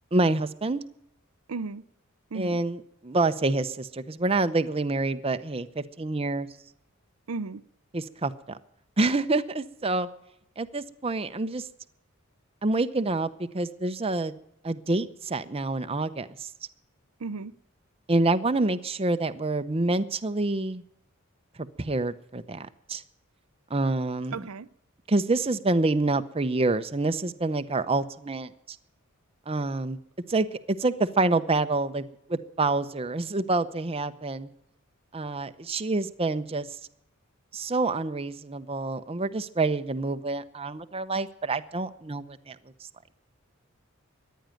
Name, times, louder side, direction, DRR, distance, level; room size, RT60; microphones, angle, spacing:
voice 1, 0.1-0.8 2.3-6.5 7.9-8.6 9.0-10.1 10.6-11.7 12.6-14.3 14.6-16.5 18.1-20.8 21.8-23.0 23.7-24.5 25.1-28.8 29.5-30.0 30.3-34.5 35.1-36.7 37.5-42.6, right 2 dB, 25° right, 0.7 m, -27 dB
voice 2, 1.5-1.8 2.3-2.6 7.3-7.6 17.2-17.5 24.3-24.7, right 4 dB, 85° right, 0.6 m, -34 dB
14.5 x 10.5 x 9.0 m
head